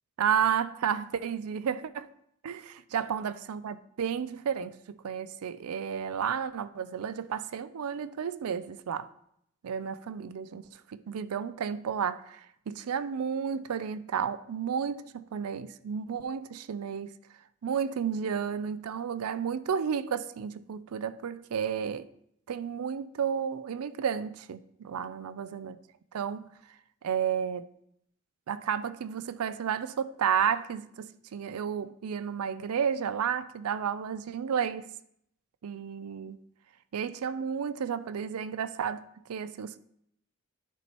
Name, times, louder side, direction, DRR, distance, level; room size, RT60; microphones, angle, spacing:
voice 1, 0.2-2.1 2.4-9.1 9.6-17.1 17.6-22.1 22.5-25.8 26.1-26.5 27.0-27.7 28.5-34.9 35.6-36.4 36.9-39.8, right 7 dB, 90° right, 0.4 m, -32 dB
11.0 x 6.1 x 2.9 m
head